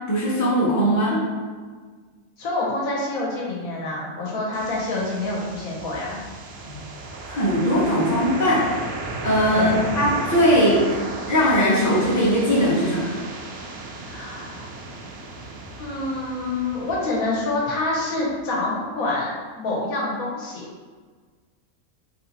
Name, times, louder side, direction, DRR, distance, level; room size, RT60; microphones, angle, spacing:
voice 1, 0.1-1.2 6.7-6.8 7.3-8.6 9.2-11.0 11.3-13.2, equal, 15° left, -7 dB, 0.7 m, -20 dB
voice 2, 2.4-6.2 9.5-9.8 14.0-14.6 15.8-19.3 19.6-20.6, left 2 dB, 65° left, -4 dB, 1.2 m, -27 dB
sound 1, 4.5-18.4, right 2 dB, 90° right, 0.5 m, -35 dB
3.5 x 2.9 x 3.8 m, 1.5 s
omnidirectional pair, 1.6 m